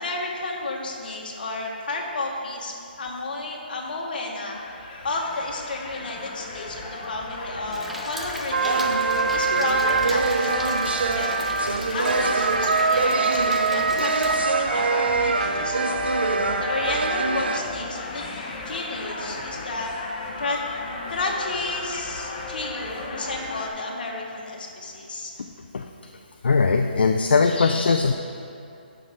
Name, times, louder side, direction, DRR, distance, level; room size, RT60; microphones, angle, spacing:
voice 1, 0.0-16.1 16.6-20.6 21.1-25.4, left 2 dB, 60° left, -1 dB, 1.7 m, -32 dB
sound 1, 4.5-23.7, left 3 dB, 35° left, 1.3 m, -35 dB
Rain, 7.7-14.4, right 1 dB, ahead, 0.4 m, -39 dB
sound 2, 8.5-17.6, right 4 dB, 80° right, 0.6 m, -23 dB
voice 2, 26.4-28.1, left 4 dB, 75° left, 4 dB, 0.5 m, -20 dB
12.0 x 5.7 x 3.8 m, 2.7 s
hypercardioid pair, 150°, 6 cm